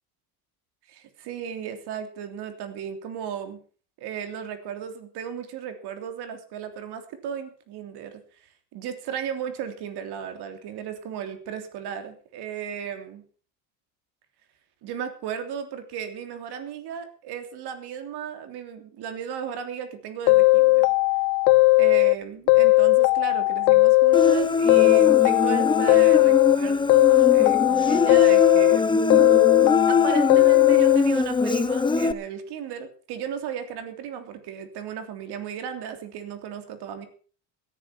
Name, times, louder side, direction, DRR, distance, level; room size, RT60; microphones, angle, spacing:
voice 1, 0.9-3.6 4.0-13.2 14.8-20.8 21.8-29.4 29.9-37.1, right 8 dB, 60° right, 8 dB, 3.3 m, -35 dB
sound 1, 20.3-22.2 22.5-24.4 24.7-26.6 26.9-28.8 29.1-31.0, left 22 dB, 70° left, 0.6 m, -17 dB
Human voice, 24.1-32.1, left 3 dB, 10° left, 0.8 m, -23 dB
17.0 x 10.5 x 6.0 m, 0.43 s
cardioid pair, 125°, 44 cm